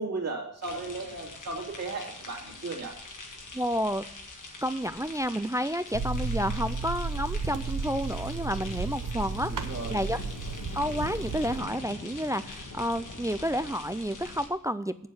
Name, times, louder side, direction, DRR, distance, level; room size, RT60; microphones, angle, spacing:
voice 1, 0.0-2.9 9.5-10.0, right 3 dB, 55° right, -1 dB, 2.5 m, -35 dB
sound 1, 0.6-14.5, left 2 dB, 80° left, 1.7 m, -43 dB
voice 2, 3.5-4.0 4.6-10.2 10.7-15.1, equal, 10° right, 12 dB, 0.3 m, -30 dB
sound 2, 5.9-11.6, right 4 dB, 85° right, 1.0 m, -33 dB
8.4 x 7.3 x 6.1 m, 0.66 s
wide cardioid pair, 140°, 31 cm